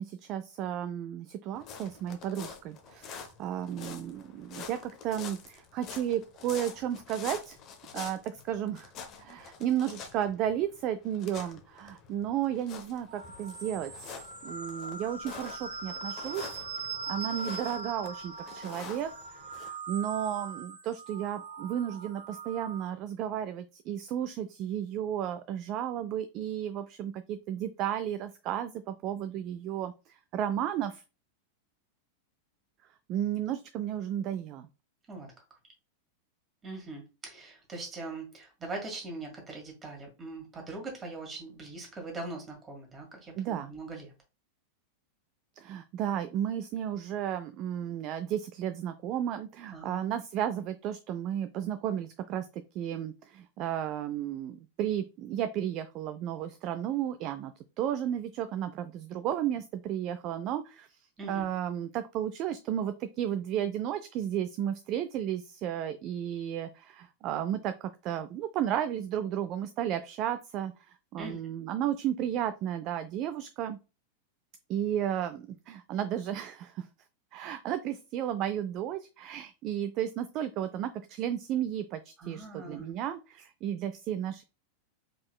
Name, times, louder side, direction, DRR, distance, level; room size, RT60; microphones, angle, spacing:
voice 1, 0.0-7.6 7.9-8.9 9.2-13.9 14.4-16.6 17.1-31.0 33.1-34.7 43.4-43.7 45.6-57.5 57.8-60.9 61.3-70.7 71.1-73.8 74.7-76.9 77.3-84.4, right 10 dB, 40° right, 10 dB, 0.4 m, -33 dB
sound 1, 1.5-19.7, left 6 dB, 35° left, 0.8 m, -47 dB
sound 2, 13.1-22.9, right 4 dB, 65° right, 0.8 m, -41 dB
voice 2, 35.1-35.4 36.6-44.1 49.7-50.0 61.2-61.5 71.2-71.4 82.2-83.0, right 2 dB, 20° right, 1 dB, 1.8 m, -41 dB
4.8 x 3.6 x 2.2 m, 0.30 s
figure-of-eight pair, 90°, 0 cm